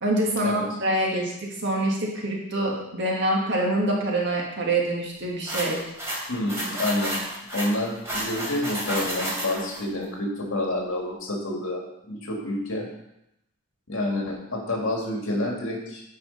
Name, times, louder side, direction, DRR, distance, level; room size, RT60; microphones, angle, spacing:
voice 1, 0.0-5.8, right 1 dB, 55° right, -2 dB, 1.6 m, -25 dB
sound 1, 5.5-9.8, equal, 15° right, 3.2 m, -31 dB
voice 2, 6.3-7.2 7.5-12.9 13.9-16.0, left 1 dB, 65° left, -1 dB, 2.2 m, -28 dB
9.5 x 4.9 x 5.5 m, 0.83 s
head